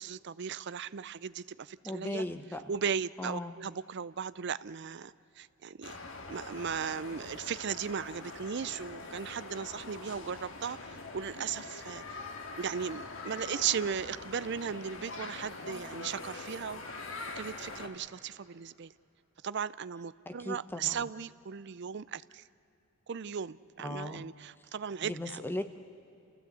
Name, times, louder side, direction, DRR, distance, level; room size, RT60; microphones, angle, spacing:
voice 1, 0.0-2.2 2.7-5.9 6.2-12.0 12.6-16.8 17.3-18.9 19.4-22.4 23.1-25.4, right 7 dB, 55° right, 17 dB, 0.5 m, -37 dB
voice 2, 1.8-2.7 3.2-3.5 20.3-21.0 23.8-24.3 25.0-25.6, left 1 dB, 10° left, 8 dB, 0.8 m, -37 dB
sound 1, 5.8-17.9, left 3 dB, 65° left, 2.0 m, -44 dB
28.0 x 15.5 x 8.1 m, 2.8 s
head